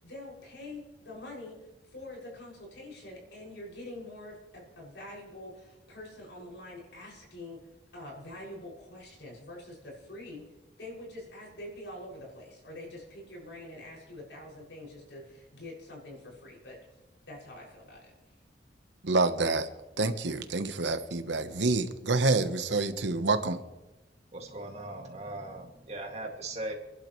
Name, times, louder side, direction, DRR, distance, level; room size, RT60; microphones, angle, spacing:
voice 1, 0.0-10.5 10.8-18.3, left 1 dB, 80° left, -3 dB, 6.7 m, -45 dB
voice 2, 19.0-19.7 20.0-23.6, right 3 dB, 85° right, 9 dB, 1.1 m, -27 dB
voice 3, 24.3-26.7, right 2 dB, 35° right, 1 dB, 2.4 m, -39 dB
29.0 x 11.5 x 3.2 m, 1.1 s
head